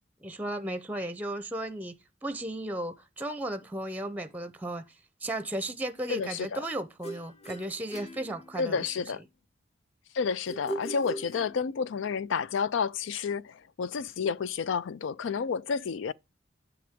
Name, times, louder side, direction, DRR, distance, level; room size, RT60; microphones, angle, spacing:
voice 1, 0.2-1.9 2.2-4.8 5.2-8.9, right 1 dB, 10° right, 0.6 m, -35 dB
voice 2, 6.1-6.6 8.6-9.2 10.1-16.1, left 6 dB, 85° left, 0.4 m, -30 dB
sound 1, 7.0-9.0 10.5-12.0, right 1 dB, 35° left, 0.8 m, -40 dB
7.7 x 6.0 x 3.5 m
head